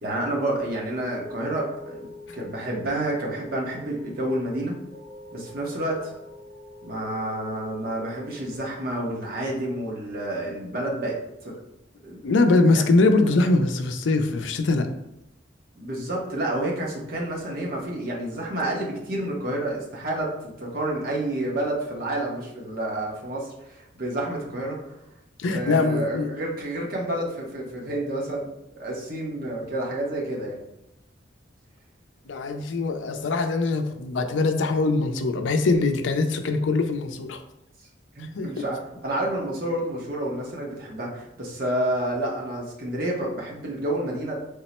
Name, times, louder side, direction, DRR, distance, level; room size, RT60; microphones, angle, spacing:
voice 1, 0.0-2.1 2.3-4.7 5.3-6.1 6.8-11.6 12.0-12.2 15.8-25.0 25.5-28.4 28.8-30.6 38.2-44.3, right 1 dB, 55° right, -2 dB, 0.9 m, -29 dB
sound 1, 0.6-8.6, left 2 dB, 75° right, 1.1 m, -45 dB
voice 2, 12.2-14.9 25.4-26.3 32.3-37.4 38.2-38.6, left 3 dB, 85° left, 6 dB, 0.4 m, -22 dB
3.6 x 2.0 x 4.2 m, 0.84 s
head